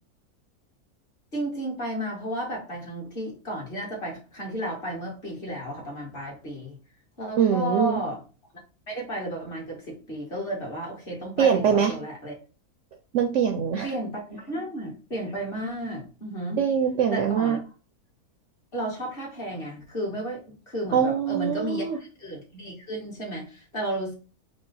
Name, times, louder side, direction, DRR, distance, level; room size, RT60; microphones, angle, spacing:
voice 1, 1.3-6.8 7.2-8.2 8.9-12.3 13.8-16.6 17.1-17.6 18.7-24.1, right 1 dB, 35° left, -2 dB, 1.8 m, -33 dB
voice 2, 7.4-8.0 11.4-11.9 13.1-13.9 16.6-17.6 20.9-22.0, right 7 dB, 65° right, 5 dB, 0.7 m, -23 dB
4.8 x 2.3 x 4.0 m, 0.35 s
omnidirectional pair, 1.6 m